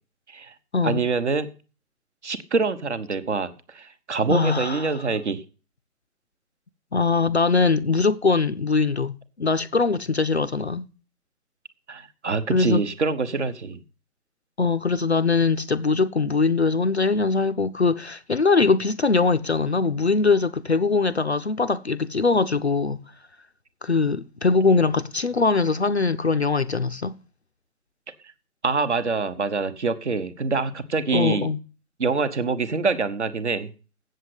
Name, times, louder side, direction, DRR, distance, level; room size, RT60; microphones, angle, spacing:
voice 1, 0.8-1.5 2.2-5.4 11.9-13.8 28.6-31.5 32.0-33.7, right 4 dB, 50° right, 1.0 m, -25 dB
voice 2, 4.3-5.0 6.9-10.9 12.5-12.8 14.6-23.0 23.8-27.2 31.1-31.6, left 4 dB, 45° left, 0.5 m, -22 dB
7.9 x 7.4 x 7.8 m
figure-of-eight pair, 160°, 46 cm